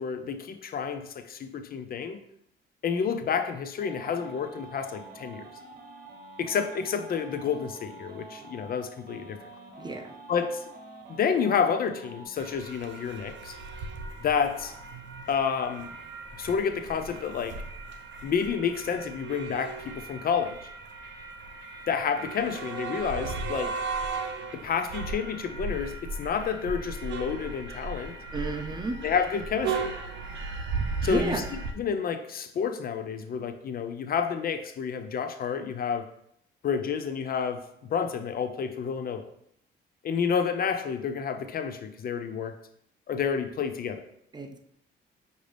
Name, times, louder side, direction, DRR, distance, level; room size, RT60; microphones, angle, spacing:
voice 1, 0.0-2.2 2.8-5.4 6.4-9.4 10.3-10.6 11.1-13.6 14.2-14.7 15.3-15.9 16.4-17.6 18.2-20.6 21.9-23.8 24.5-28.2 29.0-29.9 31.0-36.1 36.6-37.6 37.9-39.2 40.0-42.5 43.1-44.0, left 6 dB, 50° left, 8 dB, 0.4 m, -29 dB
sound 1, 3.8-12.2, right 3 dB, 50° right, 1.1 m, -47 dB
voice 2, 9.8-10.1 28.3-28.9 31.0-31.4 44.3-44.6, right 3 dB, 20° right, 5 dB, 0.5 m, -32 dB
sound 2, 12.4-31.7, right 4 dB, 70° right, 0.6 m, -36 dB
5.9 x 2.7 x 3.3 m, 0.73 s
cardioid pair, 90°, 20 cm